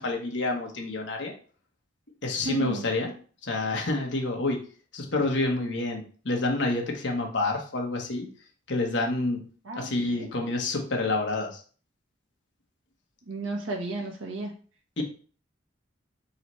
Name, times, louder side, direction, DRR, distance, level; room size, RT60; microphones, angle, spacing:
voice 1, 0.0-1.3 2.2-3.1 3.4-4.6 4.9-8.3 8.7-9.4 9.8-11.6 15.0-15.1, left 2 dB, 65° left, 1 dB, 1.2 m, -28 dB
voice 2, 2.4-2.9 9.6-10.3 13.3-14.5, right 1 dB, 85° right, 0 dB, 1.2 m, -33 dB
4.0 x 3.1 x 4.2 m, 0.41 s
head